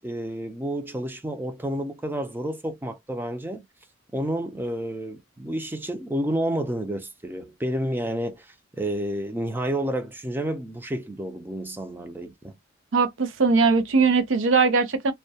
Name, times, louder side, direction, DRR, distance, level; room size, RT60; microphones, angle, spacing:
voice 1, 0.0-3.6 4.1-12.6, right 1 dB, 10° right, 0.4 m, -30 dB
voice 2, 12.9-15.1, right 4 dB, 65° right, 0.5 m, -20 dB
2.2 x 2.1 x 2.6 m
head